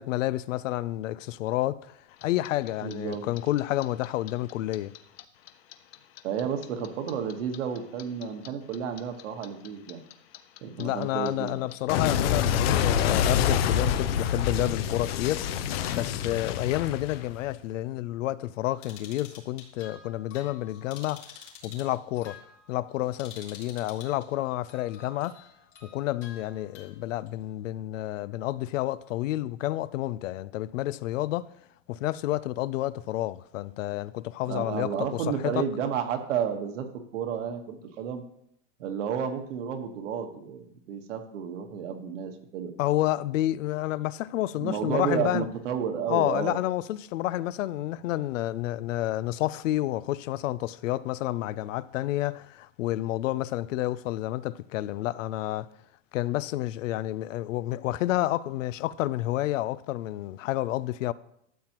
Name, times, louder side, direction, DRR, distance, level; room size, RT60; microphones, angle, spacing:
voice 1, 0.0-4.9 10.8-15.5 15.9-21.2 21.6-22.4 22.7-25.4 25.8-31.5 31.9-35.6 42.8-45.5 46.1-55.7 56.1-61.1, left 15 dB, 90° left, 0.5 m, -30 dB
Clock, 2.2-5.2 5.5-8.5 8.7-17.6, left 8 dB, 55° left, 0.7 m, -27 dB
voice 2, 2.8-3.2 6.2-10.0 10.6-11.5 34.4-38.2 38.8-42.7 44.6-46.6, right 7 dB, 75° right, 1.4 m, -31 dB
sound 1, 18.8-24.2 24.7-27.3, left 7 dB, 75° left, 2.7 m, -49 dB
12.5 x 7.6 x 3.0 m
supercardioid pair, 170°, 37 cm